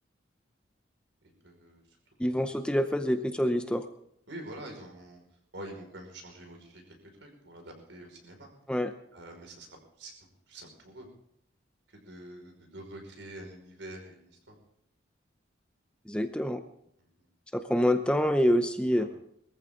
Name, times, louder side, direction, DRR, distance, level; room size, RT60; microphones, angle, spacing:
voice 1, 1.2-2.0 4.3-5.2 5.5-8.5 9.1-10.1 10.5-11.1 11.9-14.6 17.0-17.3 19.0-19.1, right 1 dB, 70° right, 2 dB, 5.4 m, -46 dB
voice 2, 2.2-3.8 8.7-8.9 16.1-16.6 17.5-19.0, equal, 5° left, 8 dB, 0.6 m, -26 dB
22.0 x 14.5 x 3.8 m, 0.72 s
head